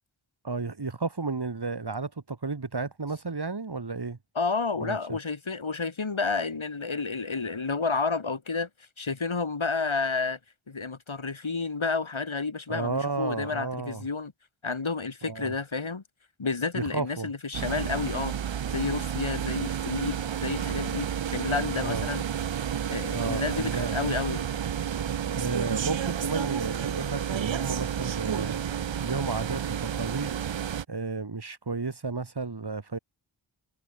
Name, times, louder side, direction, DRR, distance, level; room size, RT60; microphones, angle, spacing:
voice 1, 0.4-4.2 4.8-5.2 12.7-14.0 15.2-15.5 16.7-17.3 21.8-22.1 23.1-24.0 25.3-28.6 29.0-30.4 30.9-33.0, right 4 dB, 55° right, 2.3 m, -32 dB
voice 2, 4.4-8.7 9.0-10.4 10.7-14.3 14.6-16.0 16.4-18.3 18.7-21.1 21.3-22.2 22.9-24.4, left 4 dB, 85° left, 3.8 m, -30 dB
sound 1, 17.5-30.8, right 8 dB, 70° right, 0.7 m, -31 dB
wide cardioid pair, 45°, 46 cm